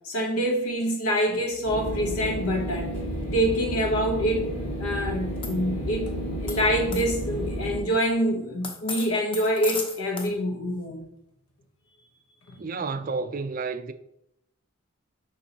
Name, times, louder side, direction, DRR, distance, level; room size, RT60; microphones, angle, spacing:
voice 1, 0.0-2.9 3.3-4.5 4.8-6.1 6.4-11.1, equal, 80° left, 0.9 m, -26 dB
sound 1, 1.6-7.8, equal, 50° left, 2.6 m, -31 dB
sound 2, 5.4-5.5 6.5-6.6 6.9-7.0 8.6-10.3, left 3 dB, 25° left, 0.7 m, -34 dB
voice 2, 12.6-13.9, right 4 dB, 40° right, 0.4 m, -31 dB
7.3 x 5.4 x 2.8 m
head